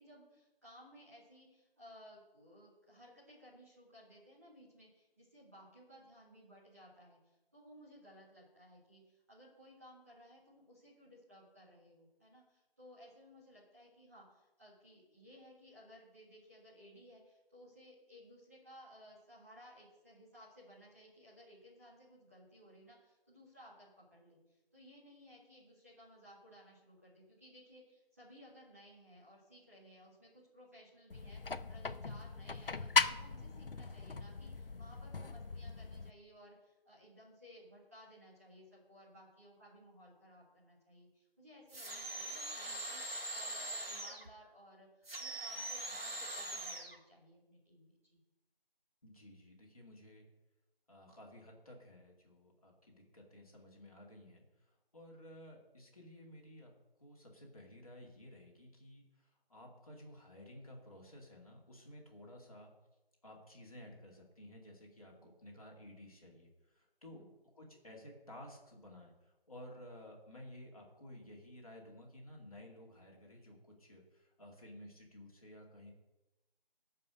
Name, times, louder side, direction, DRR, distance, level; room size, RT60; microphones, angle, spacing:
voice 1, 0.0-48.2 65.2-65.3 67.1-67.3, equal, 15° right, -9 dB, 1.8 m, -59 dB
sound 1, 31.1-36.1, left 4 dB, 65° left, 0.7 m, -38 dB
sound 2, 41.7-44.3 45.0-47.0, right 1 dB, 80° right, 2.7 m, -42 dB
voice 2, 49.0-50.3 50.9-56.7 57.0-62.7 63.2-67.2 67.5-75.9, left 1 dB, 35° left, -2 dB, 2.4 m, -54 dB
13.5 x 5.5 x 6.5 m, 1.0 s
figure-of-eight pair, 175°, 30 cm